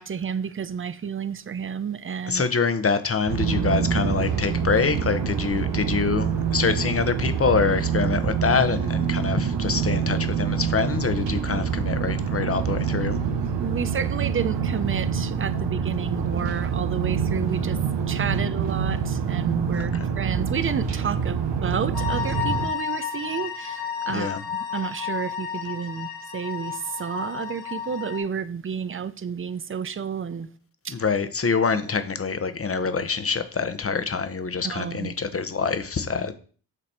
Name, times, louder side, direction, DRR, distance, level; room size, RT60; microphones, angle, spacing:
voice 1, 0.0-2.4 13.6-24.3 24.7-30.5 30.8-30.9 34.6-35.1, right 7 dB, 30° right, 0.5 m, -31 dB
voice 2, 2.3-13.2 18.3-18.5 19.7-20.1 24.1-24.5 30.9-36.3, left 5 dB, 30° left, 0.9 m, -25 dB
sound 1, 3.3-22.7, right 7 dB, 80° right, 0.9 m, -26 dB
sound 2, 21.9-28.2, left 7 dB, 80° left, 2.8 m, -32 dB
8.0 x 3.2 x 4.3 m
cardioid pair, 50°, 43 cm